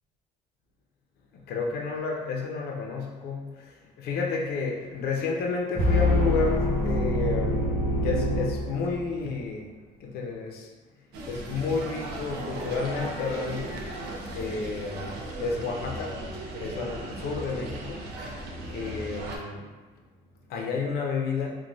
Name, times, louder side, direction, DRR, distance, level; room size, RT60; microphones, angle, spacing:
voice 1, 1.5-9.7 10.0-10.7 11.3-13.7 14.3-16.1 16.6-18.0 18.7-19.6 20.5-21.5, left 4 dB, 65° left, 0 dB, 0.5 m, -31 dB
sound 1, 5.7-9.2, left 1 dB, 15° left, 1.1 m, -25 dB
sound 2, 11.1-19.4, right 1 dB, 75° right, 0.5 m, -37 dB
2.9 x 2.1 x 2.6 m, 1.3 s
cardioid pair, 110°, 17 cm